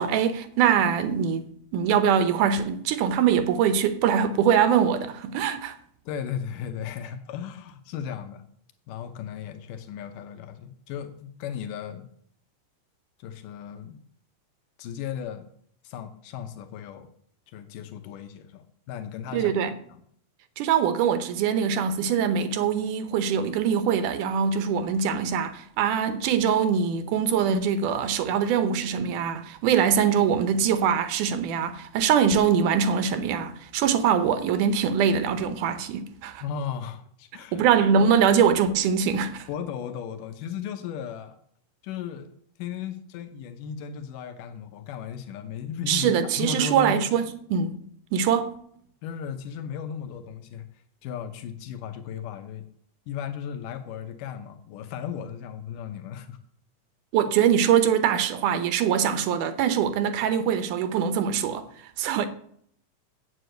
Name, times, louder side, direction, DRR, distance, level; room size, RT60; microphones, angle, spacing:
voice 1, 0.0-1.4 1.7-5.8 19.3-19.7 20.6-36.4 37.5-39.5 45.9-47.7 48.1-48.6 57.1-61.6 62.0-62.3, right 7 dB, 80° right, 2.4 m, -23 dB
voice 2, 6.1-8.4 8.9-12.1 13.2-14.0 14.8-15.5 15.8-17.1 17.5-19.5 19.9-20.0 36.4-37.6 39.5-41.4 41.8-42.3 42.6-47.0 49.0-50.7 51.0-52.7 53.1-56.4, left 8 dB, 85° left, 2.5 m, -36 dB
7.9 x 7.5 x 7.8 m
omnidirectional pair, 3.7 m